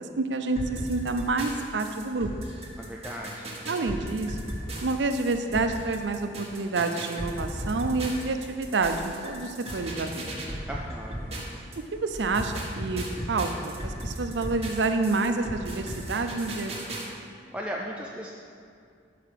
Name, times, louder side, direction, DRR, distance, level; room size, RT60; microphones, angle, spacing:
voice 1, 0.2-2.3 3.7-10.2 11.9-17.0, right 3 dB, 85° right, 7 dB, 0.6 m, -28 dB
sound 1, 0.6-11.8 12.1-17.1, right 1 dB, 35° right, 1.3 m, -36 dB
voice 2, 2.8-3.5 10.7-11.4 17.5-18.3, equal, 5° right, -2 dB, 0.4 m, -36 dB
5.9 x 5.8 x 6.4 m, 2.3 s
head